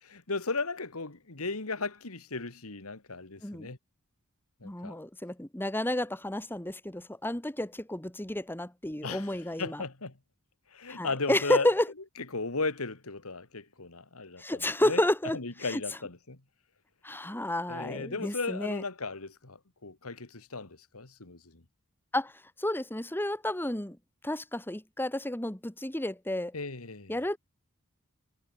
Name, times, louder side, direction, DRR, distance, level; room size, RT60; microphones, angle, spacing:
voice 1, 0.0-3.8 4.6-5.0 9.0-10.1 10.7-11.7 12.3-15.0 15.3-16.4 17.7-21.6 26.5-27.2, left 3 dB, 80° left, 2.2 m, -36 dB
voice 2, 3.4-3.7 4.6-9.8 10.9-11.9 14.4-15.4 15.7-15.8 17.0-18.8 22.1-22.3 22.6-24.0 24.2-26.5 27.1-27.4, left 1 dB, 10° left, 1.6 m, -31 dB
head